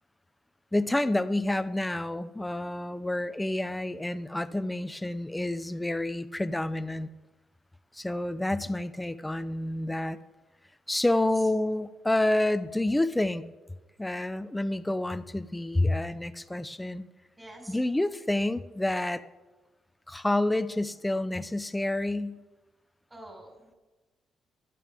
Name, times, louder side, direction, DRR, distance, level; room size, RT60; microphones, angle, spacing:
voice 1, 0.7-7.1 7.9-10.2 10.9-13.5 14.0-17.1 17.7-19.2 20.1-22.4, left 1 dB, 10° left, 13 dB, 0.7 m, -28 dB
voice 2, 17.4-17.8 23.1-23.8, right 1 dB, 15° right, 0 dB, 4.8 m, -47 dB
24.0 x 9.4 x 3.6 m, 1.2 s
cardioid pair, 90°, 0 cm